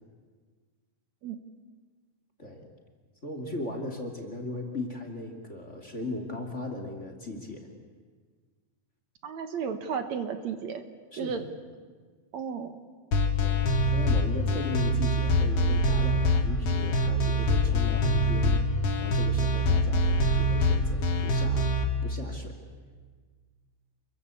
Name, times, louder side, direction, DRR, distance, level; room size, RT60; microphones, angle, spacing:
voice 1, 3.2-7.7 11.1-11.4 13.4-18.6 19.0-21.7 22.0-22.6, left 2 dB, 25° left, 4 dB, 2.8 m, -37 dB
voice 2, 9.2-10.8 11.2-11.4 12.3-12.7, right 6 dB, 65° right, 8 dB, 2.5 m, -33 dB
sound 1, 13.1-21.8, left 1 dB, 50° left, 2.7 m, -24 dB
29.0 x 22.5 x 8.4 m, 1.5 s
omnidirectional pair, 3.6 m